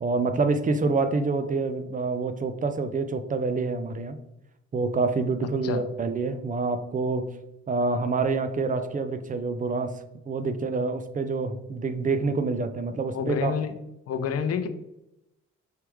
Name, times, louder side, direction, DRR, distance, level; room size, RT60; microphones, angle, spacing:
voice 1, 0.0-4.2 4.7-7.3 7.7-13.5, right 3 dB, 25° right, 10 dB, 0.5 m, -27 dB
voice 2, 13.1-13.8 14.1-14.7, left 7 dB, 55° left, 9 dB, 0.6 m, -28 dB
4.8 x 3.4 x 3.1 m, 0.87 s
cardioid pair, 90°, 30 cm